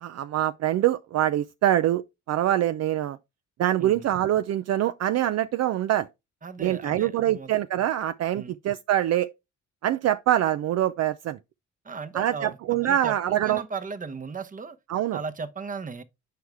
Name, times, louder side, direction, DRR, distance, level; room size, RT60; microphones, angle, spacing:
voice 1, 0.0-2.0 2.3-3.2 3.6-6.1 6.6-9.3 9.8-11.4 12.1-13.6 14.9-15.2, right 12 dB, 60° right, 0.5 m, -24 dB
voice 2, 6.4-7.5 8.4-8.6 11.8-12.6 12.8-14.8 15.1-16.0, right 5 dB, 25° right, 0.9 m, -36 dB
7.8 x 4.8 x 3.4 m
cardioid pair, 90°, 30 cm